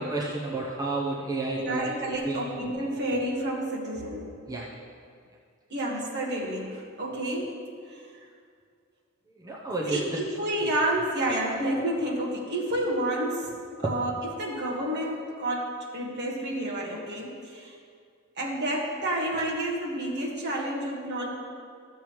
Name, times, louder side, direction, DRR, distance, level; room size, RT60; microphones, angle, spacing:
voice 1, 0.0-1.9 2.2-2.6 4.5-4.7 9.4-10.2, right 2 dB, 15° right, -4 dB, 0.7 m, -31 dB
voice 2, 1.5-4.3 5.7-7.6 9.9-13.5 13.8-17.7 18.4-21.3, right 1 dB, 55° right, -3 dB, 1.5 m, -30 dB
13.5 x 7.2 x 3.1 m, 2.2 s
head